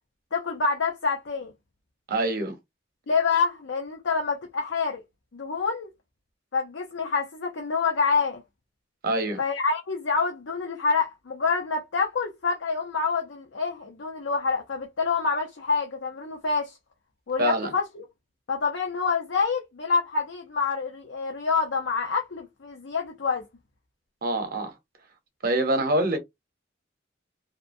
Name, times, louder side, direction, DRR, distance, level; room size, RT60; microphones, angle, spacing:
voice 1, 0.3-1.5 3.1-5.0 5.3-5.9 6.5-8.4 9.4-16.8 17.3-18.0 18.5-23.4, left 4 dB, 80° left, 0.6 m, -27 dB
voice 2, 2.1-2.6 9.0-9.4 17.4-17.7 24.2-24.7 25.4-26.2, right 1 dB, 50° right, 0.8 m, -25 dB
2.8 x 2.1 x 2.5 m
head